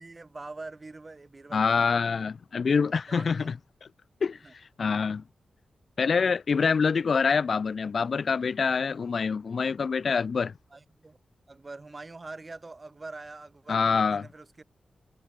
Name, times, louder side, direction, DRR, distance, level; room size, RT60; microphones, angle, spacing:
voice 1, 0.0-1.9 2.9-3.5 4.4-4.5 6.6-6.8 10.7-11.2 11.5-14.6, right 3 dB, 30° right, 3.8 m, -44 dB
voice 2, 1.5-3.5 4.2-5.2 6.0-10.5 13.7-14.3, left 5 dB, 55° left, 0.4 m, -26 dB
wide cardioid pair, 115°, 0 cm